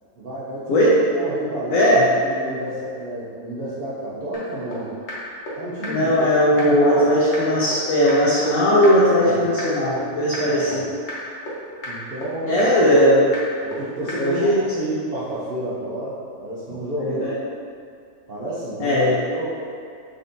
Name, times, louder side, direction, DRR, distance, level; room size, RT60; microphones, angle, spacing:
voice 1, 0.2-1.9 2.2-4.9 5.6-6.1 6.5-7.1 9.2-9.4 10.5-10.8 11.8-12.7 13.6-17.3 18.3-19.0 19.3-19.5, right 1 dB, 65° right, -10 dB, 0.5 m, -30 dB
voice 2, 1.7-2.0 5.9-10.8 12.4-13.3 14.2-14.6 17.0-17.3 18.8-19.2, equal, 65° left, -7 dB, 0.9 m, -18 dB
sound 1, 4.3-4.4 4.7-4.8 5.1-5.2 5.5-5.6 5.8-5.9 6.2-6.3 6.6-6.7 7.0-7.1 7.3-7.4 7.7-7.8 8.1-8.2 8.5-8.6 8.8-8.9 9.2-9.3 9.6-9.7 10.0-10.1 10.3-10.4 10.7-10.8 11.1-11.2 11.5-11.6 11.8-11.9 12.2-12.3 12.6-12.7 13.0-13.1 13.3-13.4 13.7-13.8 14.1-14.2, left 2 dB, 90° left, 1.4 m, -31 dB
3.8 x 3.4 x 2.6 m, 2.4 s
omnidirectional pair, 1.7 m